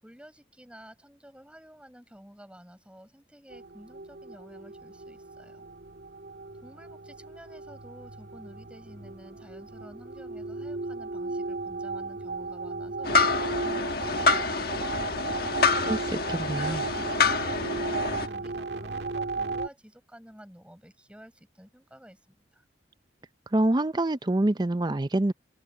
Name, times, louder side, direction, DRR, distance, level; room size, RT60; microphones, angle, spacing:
voice 1, 0.0-5.7 6.6-13.2 13.6-15.6 16.5-22.2 22.5-22.6, equal, 5° right, 6.7 m, -50 dB
sound 1, 3.5-19.7, right 3 dB, 65° right, 1.7 m, -35 dB
sound 2, 13.0-18.3, left 4 dB, 55° left, 1.4 m, -27 dB
voice 2, 15.9-16.8 23.5-25.3, right 1 dB, 25° right, 0.5 m, -26 dB
head